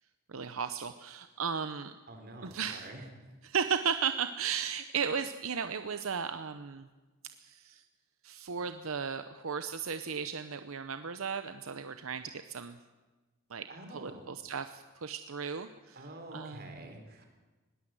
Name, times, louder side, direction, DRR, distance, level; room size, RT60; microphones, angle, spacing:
voice 1, 0.3-1.9 2.4-2.9 3.4-6.9 7.4-7.8 8.2-12.8 13.5-13.7 13.9-16.0 16.3-16.7, right 6 dB, 80° right, 9 dB, 0.8 m, -35 dB
voice 2, 2.1-3.1 13.7-14.3 15.9-17.3, right 1 dB, 50° right, 4 dB, 4.0 m, -47 dB
20.5 x 17.0 x 7.8 m, 1.2 s
head